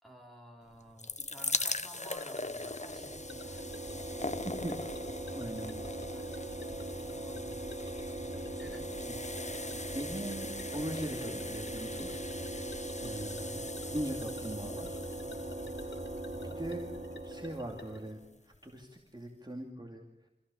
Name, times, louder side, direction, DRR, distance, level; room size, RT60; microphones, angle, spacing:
voice 1, 0.0-3.8 5.7-6.3 6.9-7.7 8.5-8.9, right 1 dB, ahead, 1 dB, 4.8 m, -53 dB
sound 1, 0.7-17.8 18.5-18.6 18.8-18.9, left 2 dB, 40° left, 1.0 m, -42 dB
sound 2, 1.8-18.1, left 3 dB, 90° left, 1.3 m, -54 dB
sound 3, 2.4-18.3, right 1 dB, 50° right, 2.5 m, -41 dB
voice 2, 5.3-5.7 9.0-9.1 9.7-12.2 12.5-12.7 13.0-15.0 15.8-15.9 16.4-16.9 17.2-18.2 18.6-20.0, right 1 dB, 25° right, 0 dB, 2.6 m, -40 dB
26.5 x 16.0 x 7.0 m, 0.87 s
wide cardioid pair, 50°, 18 cm